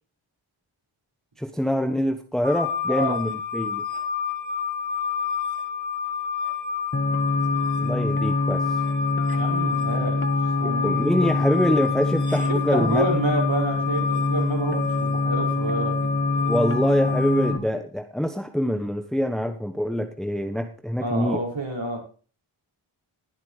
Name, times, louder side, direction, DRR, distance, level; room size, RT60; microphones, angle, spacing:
voice 1, 1.4-3.8 7.8-8.8 10.6-13.1 16.5-21.4, equal, ahead, 6 dB, 1.1 m, -25 dB
sound 1, 2.4-17.5, left 7 dB, 15° right, 2.8 m, -29 dB
sound 2, 6.9-17.6, left 2 dB, 25° left, 1.6 m, -25 dB
voice 2, 9.3-10.2 10.6-11.0 12.5-16.1 21.0-22.0, right 1 dB, 65° right, 0 dB, 6.0 m, -28 dB
19.5 x 8.1 x 3.3 m, 0.39 s
wide cardioid pair, 70°, 49 cm